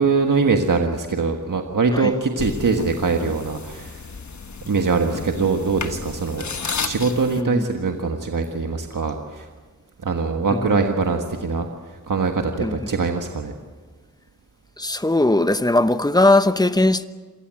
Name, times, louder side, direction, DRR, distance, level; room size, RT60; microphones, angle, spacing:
voice 1, 0.0-4.0 4.7-6.4 6.8-9.5 10.0-11.7 12.1-13.5, right 4 dB, 75° right, 1.6 m, -22 dB
sound 1, 2.4-7.4, left 5 dB, 60° left, 1.3 m, -32 dB
voice 2, 14.8-17.1, left 2 dB, 10° left, 0.9 m, -19 dB
26.5 x 18.5 x 7.6 m
wide cardioid pair, 90°, 32 cm